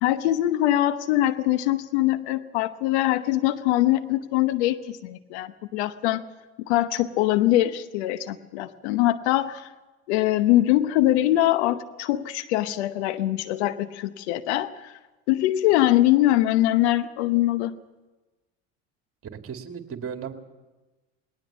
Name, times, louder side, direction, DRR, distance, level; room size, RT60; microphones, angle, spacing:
voice 1, 0.0-6.2 6.7-9.7 10.1-14.9 15.3-17.7, left 14 dB, 75° left, 12 dB, 1.0 m, -23 dB
voice 2, 19.4-20.3, right 7 dB, 40° right, 5 dB, 2.5 m, -35 dB
20.5 x 18.5 x 7.1 m, 1.2 s
hypercardioid pair, 75°, 34 cm